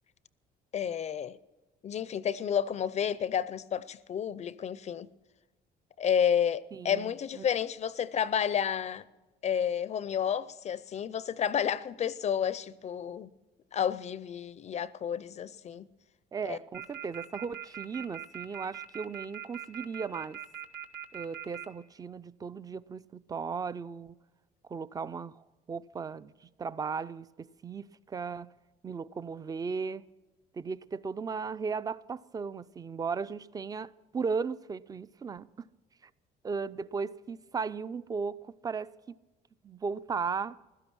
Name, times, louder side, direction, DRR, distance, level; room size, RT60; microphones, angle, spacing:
voice 1, 0.7-1.4 1.8-5.1 6.0-9.1 9.4-13.3 13.7-15.9 16.5-16.6, left 8 dB, 40° left, 0.5 m, -31 dB
voice 2, 6.7-7.4 16.3-20.4 21.1-24.2 24.7-26.3 26.6-28.5 28.8-30.0 30.5-35.5 36.4-39.0 39.6-40.6, right 5 dB, 20° right, 0.4 m, -36 dB
sound 1, 16.7-21.6, right 10 dB, 75° right, 1.9 m, -41 dB
16.0 x 12.5 x 6.1 m
cardioid pair, 110°, 17 cm